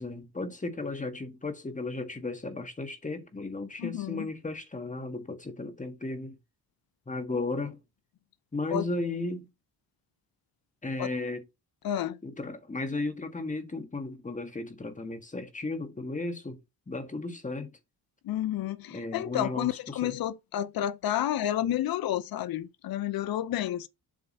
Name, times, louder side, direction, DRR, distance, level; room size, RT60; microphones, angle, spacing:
voice 1, 0.0-6.4 7.1-7.8 8.5-9.5 10.8-11.4 12.2-16.6 16.9-17.7 18.9-20.2, left 2 dB, 20° left, 1.6 m, -35 dB
voice 2, 3.8-4.3 8.7-8.9 11.0-11.1 11.8-12.2 18.2-23.9, left 12 dB, 65° left, 0.7 m, -30 dB
7.5 x 3.4 x 4.1 m
cardioid pair, 100°, 39 cm